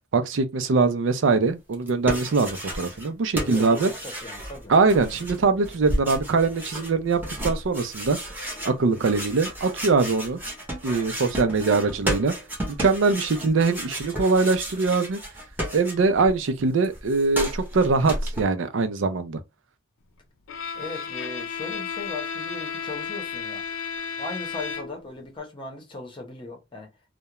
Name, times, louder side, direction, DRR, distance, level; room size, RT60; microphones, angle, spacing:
voice 1, 0.1-3.9 4.7-8.2 8.6-10.4 10.8-12.3 12.8-15.2 15.7-19.4, right 4 dB, 80° right, 0.5 m, -22 dB
sound 1, 1.7-3.1 3.3-16.3 16.6-18.4, equal, 10° right, 0.8 m, -33 dB
voice 2, 3.5-4.7 5.6-5.7 11.3-12.0 20.7-23.6 24.2-26.9, left 3 dB, 25° left, 0.8 m, -38 dB
Bowed string instrument, 20.5-25.2, left 6 dB, 80° left, 0.4 m, -33 dB
2.3 x 2.1 x 2.9 m
head